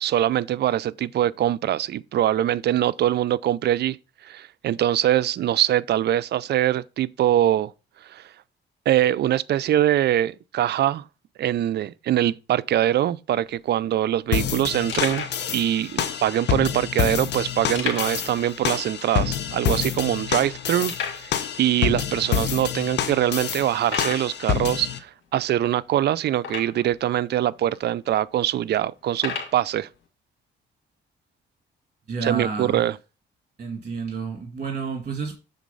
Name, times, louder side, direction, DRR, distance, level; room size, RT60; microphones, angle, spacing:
voice 1, 0.0-4.0 4.2-7.7 8.1-8.2 8.9-11.0 11.4-15.3 15.5-20.9 21.6-29.9 32.2-32.9, right 12 dB, 60° right, 0.4 m, -23 dB
sound 1, 13.4-13.5 13.7-13.9 14.4-14.5 14.9-15.4 16.2-16.3 17.7-18.3 18.6-18.7 19.2-19.3 19.8-19.9 20.9-21.3 22.1-22.2 22.8-22.9 23.8-24.3 26.4-26.9 27.7-27.8 29.1-29.6, left 6 dB, 80° left, 1.9 m, -31 dB
sound 2, 14.3-25.0, left 8 dB, 60° left, 0.8 m, -28 dB
voice 2, 32.1-32.9 33.6-35.3, right 4 dB, 40° right, 1.8 m, -30 dB
7.3 x 3.9 x 5.3 m
cardioid pair, 90°, 20 cm